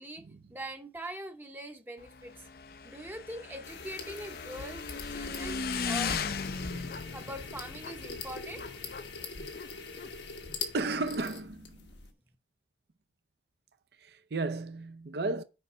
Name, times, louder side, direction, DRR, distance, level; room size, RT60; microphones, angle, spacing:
voice 1, 0.5-2.5 2.8-5.6 5.8-6.2 7.1-8.8, right 1 dB, 10° right, 0.7 m, -42 dB
Motorcycle / Engine, 2.0-11.2, left 5 dB, 55° left, 0.5 m, -38 dB
sound 1, 3.6-12.1, left 4 dB, 75° left, 1.3 m, -43 dB
voice 2, 10.7-11.8 14.0-15.4, right 3 dB, 60° right, 0.5 m, -33 dB
6.8 x 5.2 x 5.4 m
head